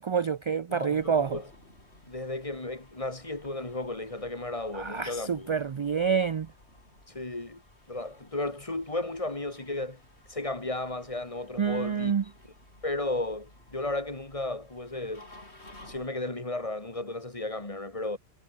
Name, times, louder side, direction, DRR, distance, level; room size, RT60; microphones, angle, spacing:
voice 1, 0.0-1.4 4.7-6.5 11.6-12.2, right 6 dB, 50° right, 0.3 m, -27 dB
voice 2, 0.7-1.5 2.1-5.5 7.1-7.6 7.9-10.0 10.3-12.1 12.8-15.3 15.8-18.2, left 2 dB, 30° left, 2.4 m, -34 dB
sound 1, 0.9-16.1, left 1 dB, 75° left, 6.8 m, -55 dB
omnidirectional pair, 1.1 m